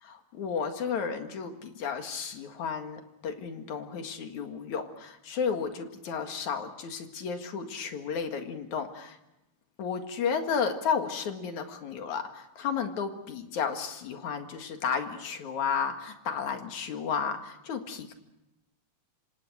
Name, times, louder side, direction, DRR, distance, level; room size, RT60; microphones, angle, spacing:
voice 1, 0.0-9.2 9.8-18.1, left 6 dB, 80° left, 6 dB, 3.3 m, -33 dB
27.0 x 25.5 x 6.3 m, 0.92 s
omnidirectional pair, 3.3 m